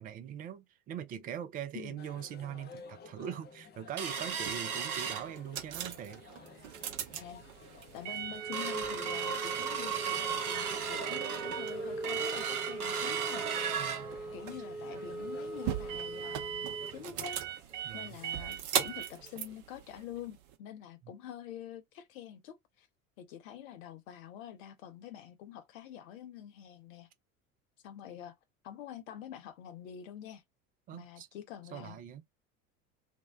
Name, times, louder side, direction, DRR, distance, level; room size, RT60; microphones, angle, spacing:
voice 1, 0.0-6.2 13.8-14.1 17.8-18.2 21.0-21.1 30.9-31.3 31.7-32.2, right 9 dB, 20° right, 0.3 m, -42 dB
sound 1, 2.0-16.5, left 5 dB, 25° left, 0.6 m, -54 dB
sound 2, 4.0-5.8 6.2-6.3 6.7-7.0 7.5-7.6 8.0-18.5 18.8-18.9 19.3-19.5 20.0-20.1, right 5 dB, 90° right, 0.6 m, -37 dB
sound 3, 4.1-20.5, right 10 dB, 45° right, 0.7 m, -39 dB
voice 2, 7.9-13.7 14.3-17.4 17.9-22.9 23.2-27.1 27.8-28.4 28.6-30.4 30.9-32.0, left 10 dB, 65° left, 0.7 m, -47 dB
2.6 x 2.1 x 3.4 m
figure-of-eight pair, 70°, 43 cm